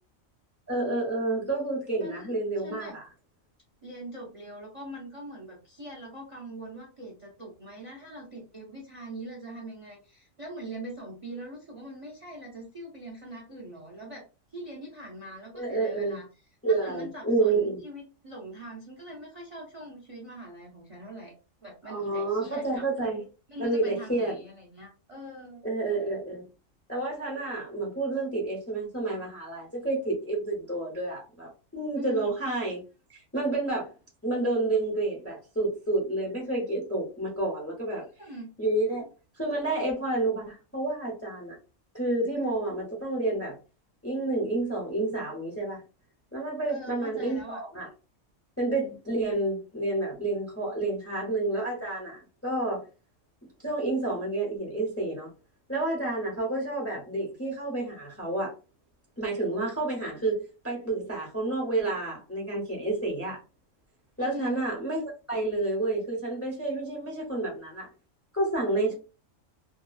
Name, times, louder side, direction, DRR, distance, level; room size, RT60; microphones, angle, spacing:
voice 1, 0.7-3.0 15.5-16.2 16.6-17.8 21.8-23.2 23.6-24.4 25.6-26.4 26.9-32.8 33.1-33.9 34.2-38.0 38.6-39.0 39.4-41.6 41.9-43.6 44.0-45.8 46.3-47.9 48.6-52.8 53.6-55.3 55.7-58.5 59.2-63.4 64.2-65.0 65.3-67.9 68.3-68.9, right 2 dB, 15° left, 0.5 m, -29 dB
voice 2, 2.0-3.0 3.8-14.2 14.5-16.3 16.7-21.3 21.6-22.8 23.5-25.6 32.0-32.3 38.2-38.5 46.7-47.6 64.2-64.6, right 1 dB, 40° right, 0.5 m, -42 dB
2.7 x 2.3 x 2.3 m
omnidirectional pair, 1.3 m